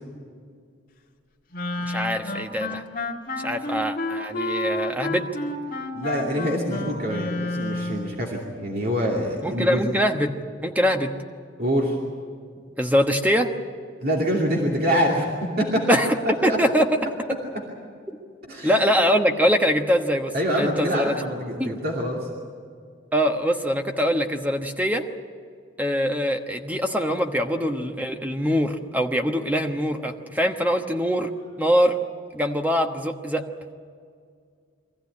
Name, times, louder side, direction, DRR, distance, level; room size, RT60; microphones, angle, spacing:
Wind instrument woodwind instrument, 1.5-8.1, left 1 dB, 45° left, 2.2 m, -30 dB
voice 1, 1.8-2.8 3.4-5.3 9.4-11.1 12.8-13.5 15.9-16.1 16.4-16.9 18.6-21.2 21.6-21.7 23.1-25.0 25.8-31.3 31.6-32.0 32.3-33.4, equal, 10° right, 4 dB, 1.1 m, -23 dB
voice 2, 5.9-9.8 11.6-12.0 14.0-16.0 16.4-16.6 17.5-17.6 18.5-18.7 20.3-22.3, equal, 50° right, -2 dB, 2.6 m, -25 dB
24.0 x 15.0 x 9.7 m, 2.2 s
head